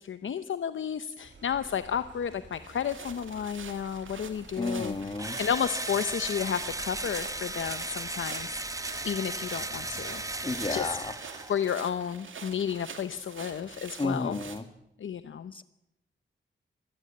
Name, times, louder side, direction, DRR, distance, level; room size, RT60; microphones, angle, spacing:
voice 1, 0.0-4.9 5.4-8.6 9.0-10.2 10.7-10.9 11.5-14.4 15.0-15.5, left 8 dB, 80° left, 12 dB, 0.8 m, -32 dB
sound 1, 1.2-11.0, right 3 dB, 70° right, 6.0 m, -50 dB
sound 2, 2.5-14.6, right 6 dB, 85° right, 2.3 m, -46 dB
voice 2, 4.5-5.4 10.4-11.1 14.0-14.7 15.5-15.6, left 2 dB, 25° left, 10 dB, 1.6 m, -32 dB
Engine / Drill, 5.2-11.8, right 2 dB, 15° right, 0.9 m, -36 dB
25.0 x 16.0 x 8.6 m, 0.88 s
wide cardioid pair, 105°, 20 cm